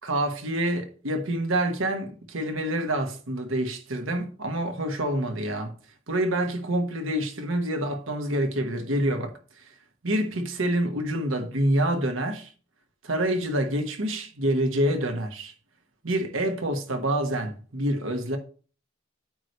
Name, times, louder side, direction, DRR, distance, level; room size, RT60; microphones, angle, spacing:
voice 1, 0.0-5.7 6.1-9.3 10.0-12.5 13.0-15.5 16.0-18.4, right 1 dB, 80° right, 1.4 m, -27 dB
8.8 x 3.3 x 6.7 m
head